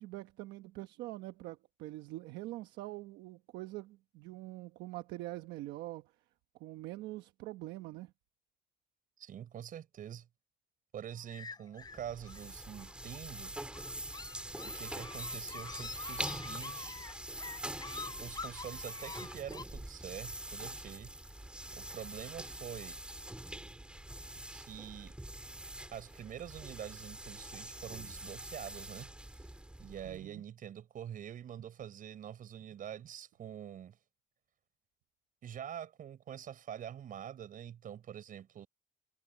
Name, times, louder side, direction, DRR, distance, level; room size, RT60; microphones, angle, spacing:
voice 1, 0.0-6.1 6.5-8.1 30.0-30.4, right 17 dB, 90° right, 1.1 m, -44 dB
voice 2, 9.2-10.3 10.9-13.6 14.6-17.0 18.2-21.1 21.7-23.0 24.5-25.2 25.9-29.1 29.8-34.0 35.4-38.7, right 9 dB, 55° right, 5.9 m, -46 dB
sound 1, 11.3-19.6, left 4 dB, 25° left, 7.2 m, -47 dB
sound 2, 11.8-30.3, right 1 dB, 5° right, 4.8 m, -44 dB
cardioid pair, 110°, 17 cm